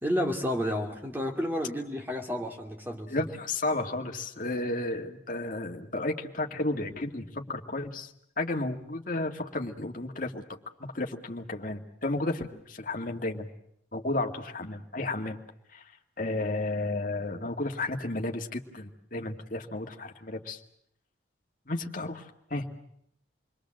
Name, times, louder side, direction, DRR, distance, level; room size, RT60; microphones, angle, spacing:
voice 1, 0.0-3.3, equal, 10° right, 2 dB, 2.8 m, -31 dB
voice 2, 3.1-8.1 8.4-10.4 10.8-13.5 13.9-15.4 15.7-15.8 16.2-20.6 21.7-22.7, left 2 dB, 45° left, 3 dB, 2.1 m, -33 dB
28.5 x 22.0 x 7.7 m, 0.74 s
head